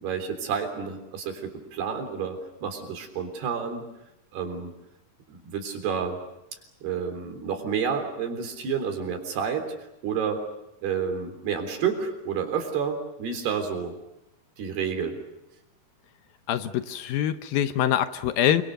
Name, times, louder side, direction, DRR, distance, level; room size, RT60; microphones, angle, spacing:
voice 1, 0.0-3.8 4.3-4.7 5.3-6.2 6.8-9.7 10.0-10.4 10.8-13.9 14.6-15.2, right 6 dB, 80° right, 6 dB, 5.7 m, -30 dB
voice 2, 16.5-18.6, left 11 dB, 70° left, 10 dB, 2.6 m, -24 dB
28.5 x 25.0 x 6.7 m, 0.91 s
omnidirectional pair, 4.6 m